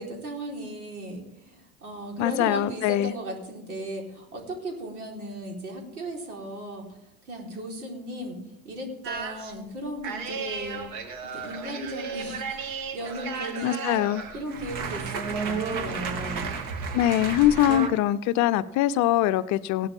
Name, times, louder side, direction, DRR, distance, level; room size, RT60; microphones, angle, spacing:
voice 1, 0.0-7.0 7.2-10.9 11.2-14.1 14.3-16.5, right 1 dB, 80° right, 0 dB, 4.4 m, -36 dB
voice 2, 2.2-3.1 13.6-14.2 16.9-19.9, left 13 dB, 40° left, 13 dB, 0.6 m, -23 dB
sound 1, 9.0-9.5 10.0-17.9, right 5 dB, 50° right, 2.3 m, -33 dB
17.0 x 11.5 x 3.6 m, 0.81 s
hypercardioid pair, 85°, 43 cm